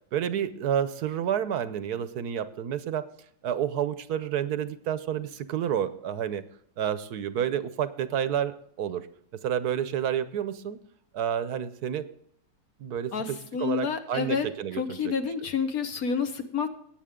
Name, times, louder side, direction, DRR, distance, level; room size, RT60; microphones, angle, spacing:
voice 1, 0.1-3.0 3.4-6.4 6.8-9.1 9.4-10.8 11.1-12.1 12.8-15.1, right 9 dB, 60° right, 12 dB, 1.2 m, -30 dB
voice 2, 13.1-14.5 14.7-16.7, left 6 dB, 55° left, 7 dB, 1.6 m, -29 dB
18.0 x 9.1 x 3.7 m, 0.68 s
omnidirectional pair, 2.0 m